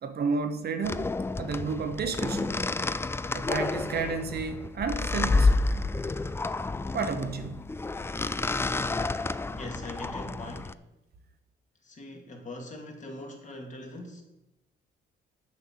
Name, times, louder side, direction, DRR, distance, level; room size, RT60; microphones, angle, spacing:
voice 1, 0.0-2.6 3.3-5.8 6.9-7.6, right 4 dB, 55° right, 1.1 m, -32 dB
sound 1, 0.8-10.7, left 3 dB, 10° left, 0.4 m, -29 dB
voice 2, 9.5-10.8 11.8-14.2, left 1 dB, 40° left, 2.3 m, -41 dB
7.4 x 5.6 x 7.6 m
cardioid pair, 90°, 20 cm